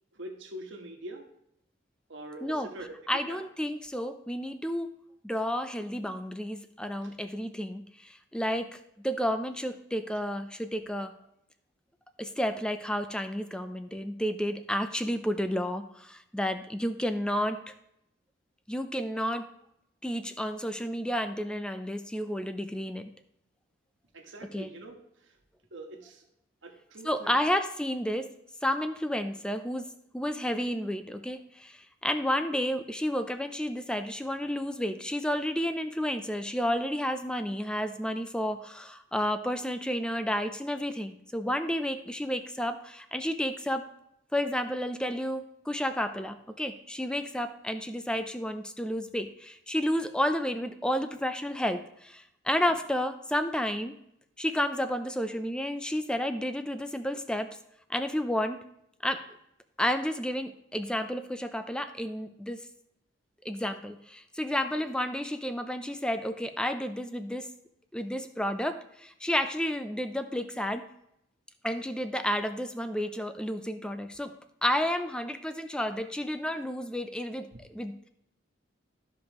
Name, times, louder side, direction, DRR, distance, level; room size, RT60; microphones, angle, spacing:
voice 1, 0.1-1.3 2.1-3.4 7.0-7.2 24.1-24.9 25.2-25.4 25.7-26.2 26.6-27.4 71.7-71.9, right 1 dB, 85° right, 3 dB, 1.4 m, -44 dB
voice 2, 3.1-4.9 5.2-8.8 9.0-11.1 12.2-17.6 18.7-19.5 20.0-23.1 24.5-24.7 27.0-28.3 28.6-29.9 30.1-31.8 32.0-43.8 44.3-54.0 54.4-57.5 57.9-58.6 59.0-59.2 59.8-62.6 63.4-67.5 67.9-70.8 71.6-74.3 74.6-78.1, equal, 5° left, 8 dB, 0.5 m, -31 dB
13.5 x 5.2 x 3.0 m, 0.77 s
head